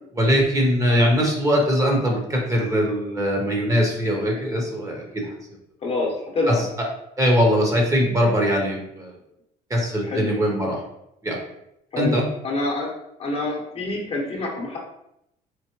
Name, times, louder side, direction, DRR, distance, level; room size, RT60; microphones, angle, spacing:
voice 1, 0.1-5.2 6.5-6.6 7.2-9.2 9.7-10.8 11.2-11.4 12.0-12.2, equal, 20° right, 0 dB, 0.9 m, -21 dB
voice 2, 5.8-6.7 10.0-10.3 11.9-12.9 13.2-14.8, left 2 dB, 35° left, -1 dB, 0.9 m, -26 dB
4.5 x 2.1 x 2.9 m, 0.80 s
cardioid pair, 110°, 17 cm